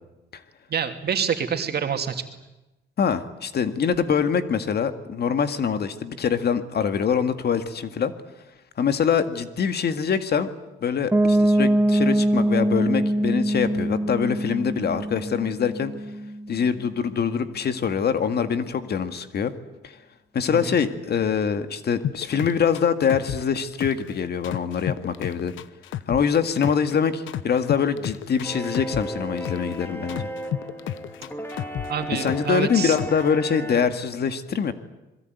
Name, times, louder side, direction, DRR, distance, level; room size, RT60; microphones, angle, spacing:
voice 1, 0.7-2.2 20.5-20.8 31.9-33.0, right 7 dB, 55° right, 5 dB, 2.9 m, -27 dB
voice 2, 3.0-8.1 8.8-10.5 10.8-15.9 16.5-19.5 19.8-20.0 20.3-25.5 26.1-30.3 32.1-34.7, left 7 dB, 55° left, 9 dB, 2.0 m, -24 dB
Piano, 11.1-16.8, right 1 dB, 15° right, 2.2 m, -23 dB
sound 1, 22.0-24.1 24.4-26.9 27.3-29.8 30.1-32.6 32.9-33.3, left 11 dB, 80° left, 1.0 m, -31 dB
sound 2, 28.4-33.9, right 1 dB, 10° left, 3.1 m, -35 dB
26.0 x 22.0 x 9.4 m, 1.0 s
cardioid pair, 90°, 20 cm